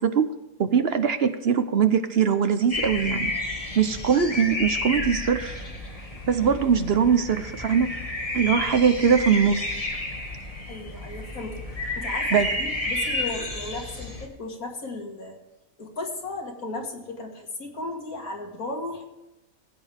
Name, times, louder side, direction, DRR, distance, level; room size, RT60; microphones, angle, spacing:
voice 1, 0.6-3.3 3.8-5.6 6.3-7.9 8.3-9.7 12.3-12.5, right 7 dB, 50° right, 10 dB, 0.9 m, -21 dB
sound 1, 2.7-14.3, left 2 dB, 25° left, 2.0 m, -31 dB
voice 2, 10.7-11.6 12.0-15.4 15.8-19.0, left 2 dB, 75° left, 1 dB, 2.6 m, -35 dB
18.0 x 8.8 x 3.5 m, 0.99 s
omnidirectional pair, 1.5 m